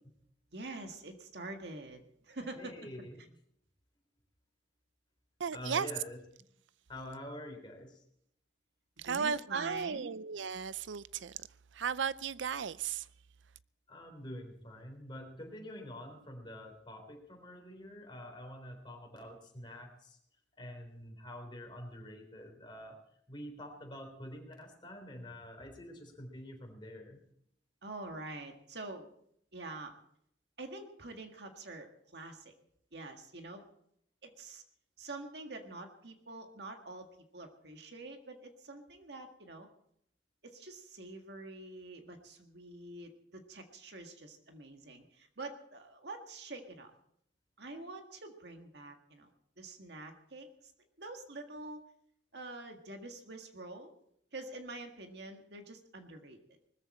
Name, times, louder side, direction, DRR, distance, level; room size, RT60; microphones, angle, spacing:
voice 1, 0.5-2.7 9.0-10.1 27.8-29.1 29.5-29.9 30.6-32.5 32.9-33.7 34.2-34.6 35.0-39.7 40.4-46.9 47.6-49.3 49.6-50.7 51.0-51.8 52.3-53.9 54.3-56.6, right 2 dB, 60° right, 1.8 m, -46 dB
voice 2, 2.5-3.2 5.5-6.2 6.9-8.0 13.9-20.2 20.6-23.0 23.3-27.2, left 1 dB, 25° left, 3.7 m, -47 dB
voice 3, 5.4-5.9 9.0-11.4 11.7-13.1, right 6 dB, 80° right, 0.5 m, -35 dB
20.0 x 14.0 x 4.3 m
head